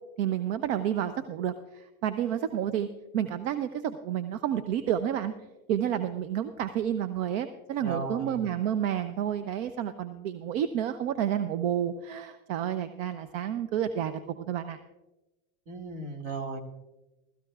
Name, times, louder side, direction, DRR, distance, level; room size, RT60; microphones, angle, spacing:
voice 1, 0.2-2.9 3.1-5.3 5.7-14.8, right 10 dB, 70° right, 10 dB, 0.8 m, -30 dB
voice 2, 7.8-8.4 15.7-16.6, right 3 dB, 50° right, 3 dB, 2.2 m, -35 dB
19.0 x 14.0 x 2.4 m, 1.0 s
supercardioid pair, 125°, 40 cm